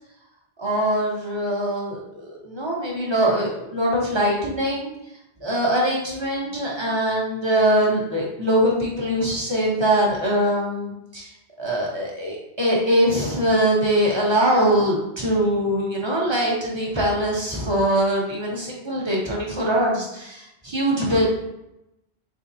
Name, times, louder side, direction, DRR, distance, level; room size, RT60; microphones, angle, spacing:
voice 1, 0.6-4.9 5.4-11.3 11.6-21.3, right 1 dB, 25° right, -3 dB, 1.0 m, -22 dB
3.9 x 3.7 x 2.7 m, 0.88 s
omnidirectional pair, 1.1 m